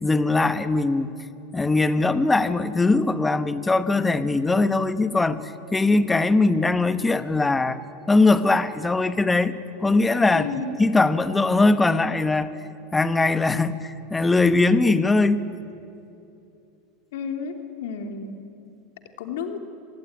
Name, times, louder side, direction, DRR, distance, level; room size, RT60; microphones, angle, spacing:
voice 1, 0.0-1.1 1.5-7.8 8.1-9.5 9.8-10.5 10.8-12.6 12.9-15.5, left 3 dB, 10° left, 12 dB, 1.1 m, -21 dB
voice 2, 10.3-10.7 17.1-18.4 19.2-19.6, left 5 dB, 75° left, 5 dB, 2.9 m, -31 dB
25.0 x 19.5 x 9.6 m, 2.7 s
supercardioid pair, 120°, 0 cm